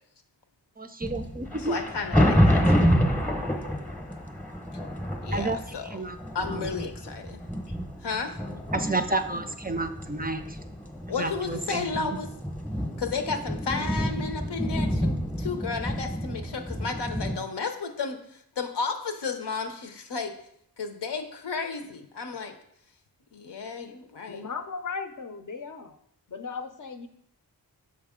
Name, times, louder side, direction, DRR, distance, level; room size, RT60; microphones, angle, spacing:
voice 1, 0.8-1.8 5.3-5.6 5.9-6.2 6.5-6.7 8.7-10.6 11.2-12.2, right 2 dB, 25° right, 8 dB, 0.4 m, -30 dB
sound 1, 1.0-17.4, equal, 5° left, 0.8 m, -28 dB
voice 2, 1.6-2.9 5.2-6.1 6.3-7.4 8.0-8.4 11.1-12.3 13.0-20.3 20.8-22.5 23.3-24.5, left 5 dB, 80° left, 6 dB, 0.8 m, -33 dB
voice 3, 24.3-26.0 26.3-27.1, left 5 dB, 50° left, 7 dB, 0.6 m, -36 dB
6.4 x 4.7 x 3.6 m, 0.72 s
wide cardioid pair, 75°, 40 cm